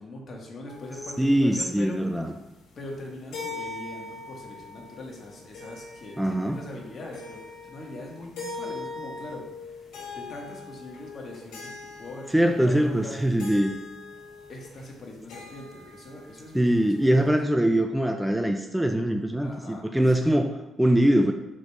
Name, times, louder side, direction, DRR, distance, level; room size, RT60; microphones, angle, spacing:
voice 1, 0.0-2.0 2.8-9.4 9.7-9.9 10.1-13.2 14.5-17.2 19.4-19.9, left 1 dB, 50° left, -1 dB, 1.8 m, -41 dB
sound 1, 0.7-17.2, left 3 dB, 85° left, 1.9 m, -42 dB
voice 2, 1.2-2.3 6.2-6.6 12.3-13.8 16.5-21.3, right 1 dB, 5° right, 5 dB, 0.5 m, -22 dB
5.0 x 4.0 x 5.8 m, 1.0 s
cardioid pair, 90°, 0 cm